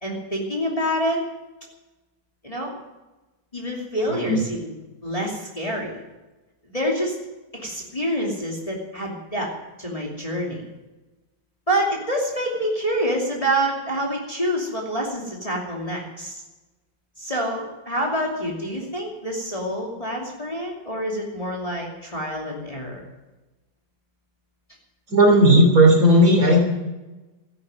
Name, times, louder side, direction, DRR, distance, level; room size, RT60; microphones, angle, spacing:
voice 1, 0.0-1.2 2.4-2.7 3.5-4.7 5.0-6.0 6.7-7.2 7.5-9.5 9.8-10.6 11.7-16.4 17.2-23.0, equal, 15° left, -2 dB, 2.8 m, -27 dB
voice 2, 4.1-4.4 25.1-26.6, right 1 dB, 45° right, 2 dB, 3.5 m, -15 dB
14.0 x 11.0 x 7.7 m, 1.1 s
omnidirectional pair, 2.1 m